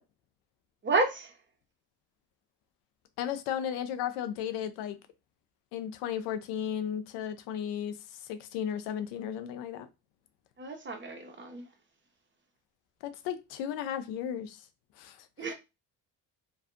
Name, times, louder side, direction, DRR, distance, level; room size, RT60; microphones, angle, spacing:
voice 1, 0.8-1.3 10.6-11.6 15.4-15.5, right 3 dB, 30° right, 0.8 m, -30 dB
voice 2, 3.2-5.0 5.7-9.9 13.0-14.7 15.0-15.5, left 9 dB, 90° left, 0.5 m, -35 dB
2.5 x 2.3 x 2.5 m
supercardioid pair, 65°, 41 cm